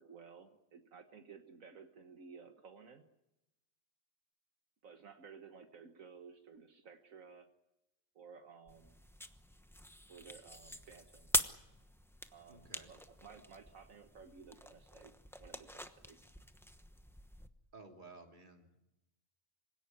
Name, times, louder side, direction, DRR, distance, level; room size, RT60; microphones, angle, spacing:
voice 1, 0.0-3.0 4.8-7.5 8.1-9.0 10.1-11.3 12.3-15.1 15.4-16.2, right 6 dB, 80° right, 6 dB, 1.8 m, -55 dB
sound 1, 8.7-17.5, equal, ahead, 0.9 m, -43 dB
voice 2, 12.5-12.9 17.7-18.8, right 3 dB, 35° right, 2 dB, 3.2 m, -55 dB
25.5 x 17.0 x 9.7 m, 0.94 s
omnidirectional pair, 1.4 m